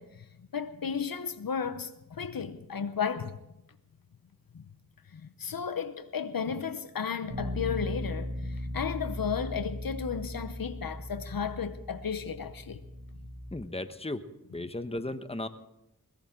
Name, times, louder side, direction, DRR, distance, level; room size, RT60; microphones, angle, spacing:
voice 1, 0.0-3.4 4.5-4.7 5.1-12.8, left 6 dB, 75° left, 0.8 m, -34 dB
Bass guitar, 7.3-13.5, left 1 dB, 60° right, 6.1 m, -38 dB
voice 2, 13.5-14.2 14.5-15.5, left 1 dB, 15° left, 1.1 m, -35 dB
22.0 x 17.0 x 3.7 m
wide cardioid pair, 40°, 35 cm